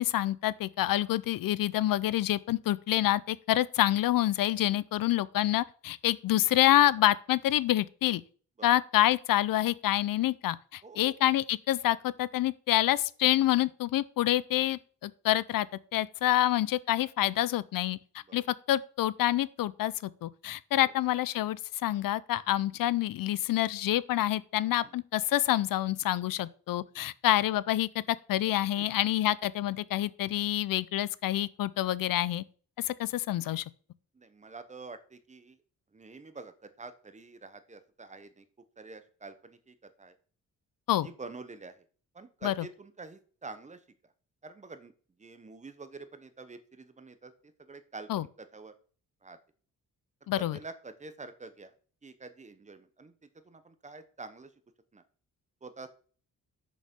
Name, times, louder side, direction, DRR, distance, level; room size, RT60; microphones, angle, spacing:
voice 1, 0.0-8.2 8.6-15.7 15.9-28.0 28.3-32.4 32.8-33.6 40.9-41.1 42.4-42.5 48.1-48.3 50.3-50.6, left 14 dB, 75° left, 0.5 m, -27 dB
voice 2, 10.8-11.2 18.3-18.4 24.8-24.9 28.8-28.9 34.1-35.6 35.9-38.5 38.8-40.1 41.0-41.8 42.1-43.8 44.4-44.9 45.2-48.7 49.2-49.4 50.4-51.7 52.0-53.1 53.4-54.5 54.9-55.0 55.6-55.9, right 3 dB, 20° right, 0.8 m, -47 dB
6.5 x 6.3 x 5.2 m
wide cardioid pair, 155°, 34 cm